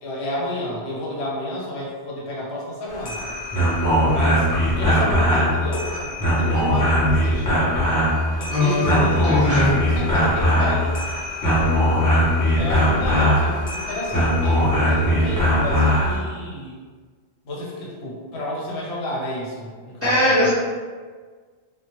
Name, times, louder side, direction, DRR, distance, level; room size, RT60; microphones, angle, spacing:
voice 1, 0.0-3.3 4.1-7.6 8.4-10.9 12.5-16.8 17.4-20.5, left 1 dB, 75° left, -5 dB, 0.9 m, -30 dB
sound 1, 2.9-16.2, equal, 25° left, 0.4 m, -20 dB
voice 2, 8.5-8.9 9.2-9.7 20.0-20.5, left 1 dB, 15° right, -11 dB, 0.9 m, -19 dB
2.2 x 2.0 x 2.8 m, 1.5 s
omnidirectional pair, 1.1 m